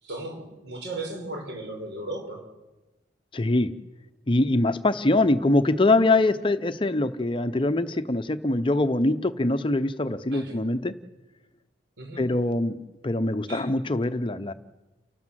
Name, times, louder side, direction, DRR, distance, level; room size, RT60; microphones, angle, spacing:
voice 1, 0.0-2.4 10.3-10.6 12.0-12.2 13.5-13.7, right 2 dB, 70° right, 2 dB, 5.6 m, -36 dB
voice 2, 3.3-3.7 4.3-10.9 12.2-14.5, left 2 dB, 25° left, 11 dB, 0.7 m, -23 dB
29.5 x 12.5 x 7.5 m, 1.0 s
head